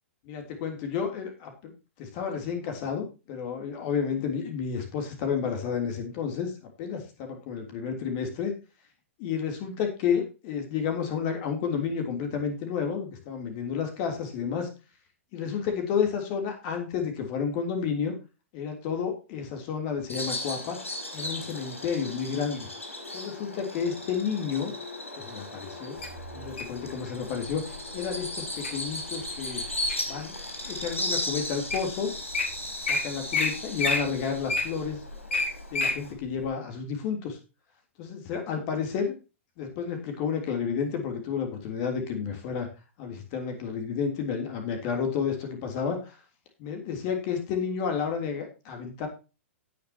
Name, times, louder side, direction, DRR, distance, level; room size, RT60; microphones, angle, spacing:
voice 1, 0.2-1.7 2.0-8.5 9.2-14.7 15.3-18.1 18.5-20.8 21.1-22.7 23.1-24.7 25.2-26.0 26.3-27.6 27.9-29.6 30.1-30.4 30.6-32.1 32.9-35.0 35.7-37.4 38.0-39.1 39.6-42.7 43.0-46.1 46.6-49.1, left 6 dB, 40° left, 4 dB, 3.3 m, -31 dB
Bird vocalization bird call bird song, 20.1-36.1, left 1 dB, 80° left, 5.0 m, -37 dB
Wild animals, 26.0-26.8 27.5-27.8 28.2-28.7 29.2-30.2 30.7-30.8 31.4-31.5 31.7-31.9 32.1-32.4 32.9-33.0 33.3-33.5 33.8-36.0 36.4-36.5, left 3 dB, 60° left, 4.7 m, -27 dB
18.0 x 6.7 x 2.9 m, 0.30 s
figure-of-eight pair, 105°, 7 cm